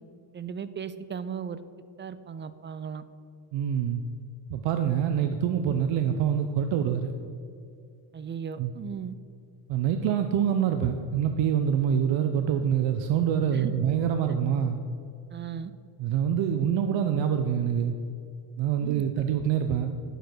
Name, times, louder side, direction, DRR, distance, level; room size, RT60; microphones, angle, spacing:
voice 1, 0.3-1.6 2.0-3.0 8.1-9.1 13.5-13.9 15.3-15.7 18.8-19.0, right 7 dB, 30° right, 13 dB, 0.3 m, -36 dB
voice 2, 3.5-4.0 4.5-7.1 8.6-8.7 9.7-14.8 16.0-17.9 18.6-20.0, right 8 dB, 85° right, 7 dB, 0.6 m, -25 dB
9.2 x 4.9 x 6.0 m, 2.5 s
cardioid pair, 100°, 44 cm